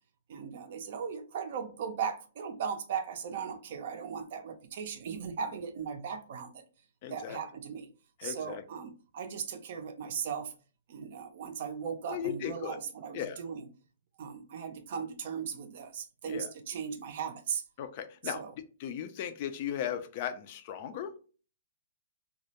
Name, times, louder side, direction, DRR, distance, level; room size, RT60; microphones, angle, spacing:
voice 1, 0.3-6.6 7.1-7.9 8.2-10.5 10.9-13.7 14.2-17.6 18.2-18.5, right 7 dB, 55° right, 0.4 m, -37 dB
voice 2, 7.0-7.4 8.2-8.6 12.1-12.8 13.1-13.4 16.3-16.5 17.8-18.4 18.8-21.1, left 9 dB, 45° left, 0.3 m, -36 dB
2.2 x 2.0 x 2.8 m
hypercardioid pair, 145°, 0 cm